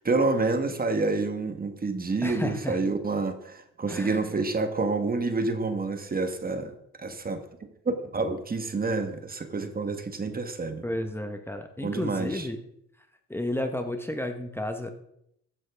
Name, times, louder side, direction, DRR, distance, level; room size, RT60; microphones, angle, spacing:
voice 1, 0.0-6.7 7.0-7.4 7.8-10.8 11.8-12.5, right 3 dB, 30° right, 8 dB, 1.3 m, -28 dB
voice 2, 2.2-2.8 3.9-4.2 10.8-12.6 13.3-14.9, left 1 dB, 10° left, 6 dB, 1.1 m, -32 dB
15.0 x 9.1 x 3.5 m, 0.75 s
cardioid pair, 90°, 30 cm